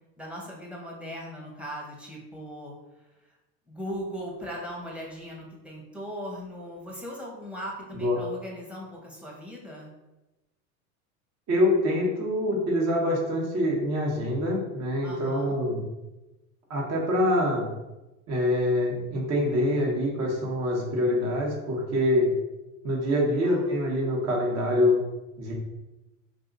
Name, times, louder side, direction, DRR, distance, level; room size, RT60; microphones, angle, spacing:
voice 1, 0.2-2.7 3.7-9.9 15.0-15.6 23.4-23.8, equal, 5° right, -3 dB, 1.0 m, -39 dB
voice 2, 7.9-8.2 11.5-15.8 16.7-17.6 18.3-22.3 22.8-25.0 25.4-25.5, left 1 dB, 40° right, -2 dB, 1.2 m, -25 dB
2.7 x 2.6 x 3.9 m, 1.0 s
hypercardioid pair, 95°, 42 cm